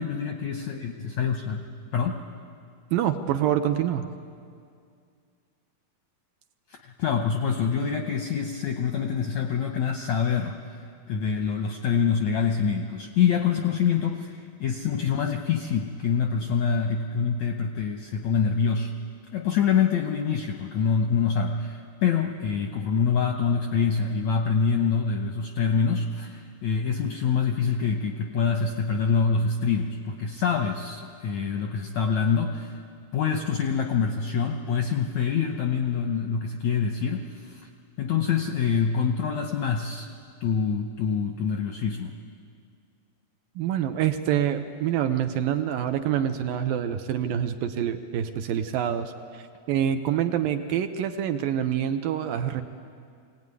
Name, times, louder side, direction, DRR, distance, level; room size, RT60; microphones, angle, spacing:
voice 1, 0.0-1.7 1.9-2.2 6.8-10.8 11.1-18.9 19.3-32.8 33.1-37.7 38.0-40.1 40.4-42.2, left 6 dB, 75° left, 4 dB, 1.6 m, -25 dB
voice 2, 2.9-4.1 43.6-52.6, right 10 dB, 75° right, 8 dB, 2.3 m, -26 dB
23.0 x 17.5 x 9.6 m, 2.3 s
omnidirectional pair, 4.5 m